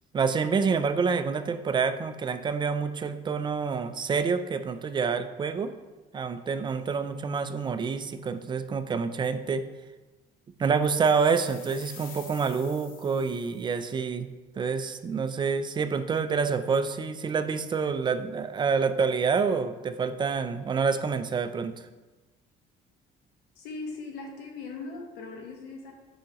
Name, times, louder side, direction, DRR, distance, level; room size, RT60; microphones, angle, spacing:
voice 1, 0.1-5.7 6.1-9.6 10.6-14.3 14.6-21.8, right 5 dB, 25° right, 10 dB, 0.4 m, -27 dB
sound 1, 10.8-13.8, left 5 dB, 60° left, 1.1 m, -49 dB
voice 2, 23.5-25.9, left 3 dB, 85° left, 1 dB, 1.3 m, -39 dB
7.7 x 4.7 x 3.0 m, 1.2 s
cardioid pair, 110°, 17 cm